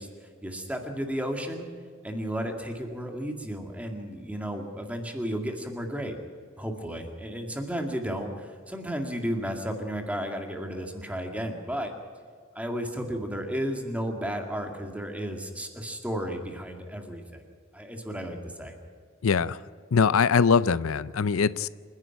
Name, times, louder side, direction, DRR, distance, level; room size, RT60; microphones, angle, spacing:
voice 1, 0.0-1.7 2.0-6.2 6.6-11.9 12.6-17.4 17.7-18.8, equal, 5° right, 4 dB, 2.1 m, -33 dB
voice 2, 19.2-19.6 19.9-21.7, left 5 dB, 90° left, 18 dB, 0.5 m, -22 dB
27.0 x 10.5 x 9.0 m, 2.1 s
head